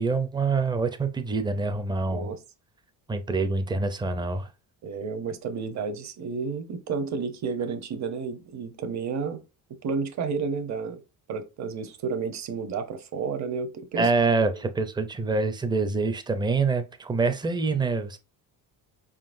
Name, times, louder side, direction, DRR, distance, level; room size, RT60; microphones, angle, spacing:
voice 1, 0.0-2.3 3.1-4.5 13.9-18.2, right 4 dB, 10° right, 0.5 m, -26 dB
voice 2, 4.8-9.4 9.8-11.0 11.3-14.1 14.5-14.6, right 5 dB, 45° right, 0.8 m, -31 dB
4.9 x 3.8 x 2.6 m
cardioid pair, 135°, 40 cm